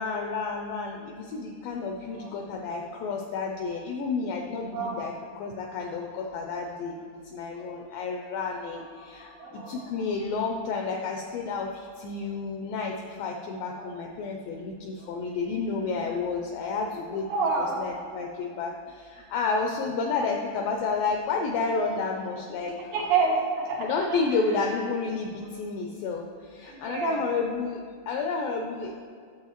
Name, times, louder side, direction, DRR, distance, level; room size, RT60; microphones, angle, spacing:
voice 1, 0.0-6.9 7.2-17.3 17.8-22.8 23.8-29.0, left 4 dB, 85° left, 2 dB, 2.0 m, -31 dB
voice 2, 9.4-9.8 13.7-13.9 17.3-17.8 22.9-24.2 26.7-27.2, right 4 dB, 70° right, -3 dB, 2.5 m, -28 dB
10.0 x 7.0 x 3.0 m, 2.2 s
omnidirectional pair, 4.5 m